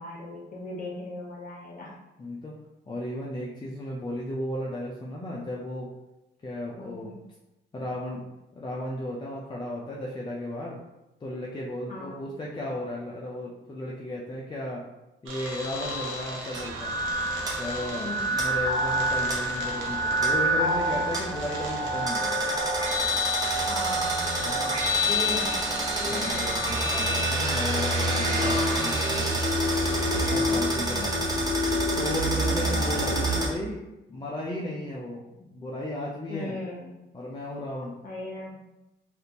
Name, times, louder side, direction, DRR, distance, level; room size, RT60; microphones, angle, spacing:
voice 1, 0.0-1.9 6.8-7.1 11.9-12.2 18.0-18.3 23.7-24.3 25.1-25.7 26.0-27.0 30.4-31.1 36.3-37.0 38.0-38.5, left 2 dB, 45° left, -3 dB, 1.1 m, -38 dB
voice 2, 2.2-2.5 2.9-5.9 6.4-7.1 7.7-8.2 8.5-10.8 11.2-14.8 15.2-17.0 17.6-22.3 24.3-24.9 26.0-29.4 30.2-31.3 31.9-33.8 34.1-36.6 37.1-37.9, left 1 dB, 25° left, -4 dB, 0.5 m, -35 dB
sound 1, 15.3-33.6, left 1 dB, 85° right, 0.8 m, -29 dB
sound 2, 16.5-33.5, right 2 dB, 20° right, 0.9 m, -30 dB
3.4 x 2.5 x 2.8 m, 0.96 s
cardioid pair, 90°, 20 cm